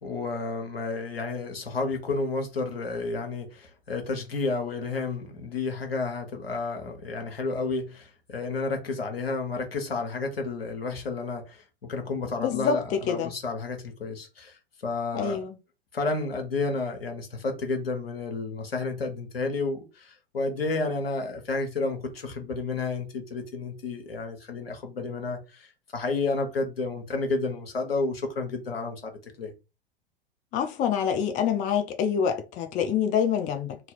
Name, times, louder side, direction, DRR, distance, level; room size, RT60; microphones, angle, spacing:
voice 1, 0.0-15.4 15.9-29.1 29.4-29.5, left 3 dB, 80° left, 1.1 m, -31 dB
voice 2, 12.4-13.3 15.1-15.6 30.5-33.8, left 7 dB, 25° left, 0.5 m, -26 dB
2.8 x 2.7 x 4.0 m
figure-of-eight pair, 95°, 29 cm